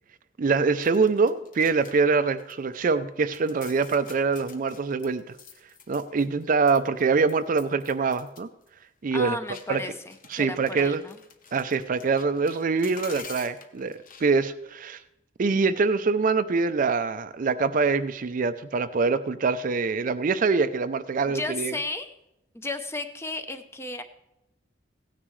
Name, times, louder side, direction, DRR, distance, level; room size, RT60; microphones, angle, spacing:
voice 1, 0.4-5.4 5.9-8.5 9.0-9.4 9.7-9.8 10.3-11.0 11.5-15.0 15.4-21.8, right 4 dB, 45° right, 12 dB, 0.4 m, -24 dB
sound 1, 0.8-2.1 2.4-3.0 3.3-6.4 6.7-8.4 8.7-8.8 9.5-14.3, left 6 dB, 45° left, 0.9 m, -48 dB
voice 2, 9.1-11.2 21.3-22.1 22.5-24.0, left 2 dB, 15° left, 8 dB, 0.6 m, -34 dB
16.0 x 9.8 x 3.2 m, 0.87 s
head